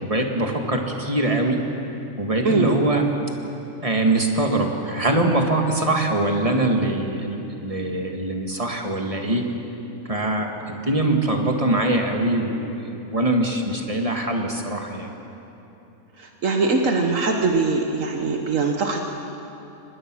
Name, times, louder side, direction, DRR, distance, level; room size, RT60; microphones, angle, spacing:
voice 1, 0.0-1.6 2.2-3.1 3.8-9.4 10.1-15.1, right 2 dB, 25° right, 2 dB, 2.0 m, -23 dB
voice 2, 2.4-2.8 16.2-19.0, right 3 dB, 65° right, 3 dB, 1.5 m, -22 dB
24.5 x 20.0 x 6.2 m, 3.0 s
omnidirectional pair, 1.5 m